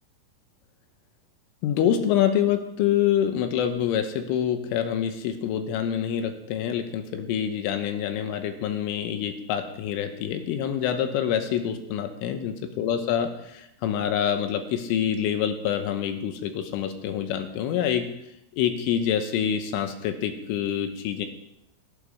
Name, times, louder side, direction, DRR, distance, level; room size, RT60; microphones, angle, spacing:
voice 1, 1.6-18.1 18.6-21.3, left 9 dB, 80° left, 7 dB, 3.4 m, -26 dB
18.0 x 11.5 x 3.5 m, 0.82 s
omnidirectional pair, 5.9 m